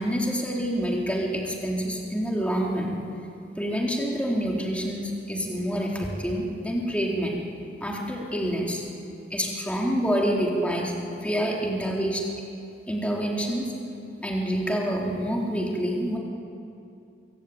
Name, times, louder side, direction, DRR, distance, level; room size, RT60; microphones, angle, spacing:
voice 1, 0.0-3.0 3.6-7.4 7.8-8.9 9.3-10.9 11.2-12.2 12.9-13.7 14.2-16.2, equal, 5° left, -2 dB, 3.9 m, -27 dB
25.5 x 25.0 x 8.9 m, 2.6 s
head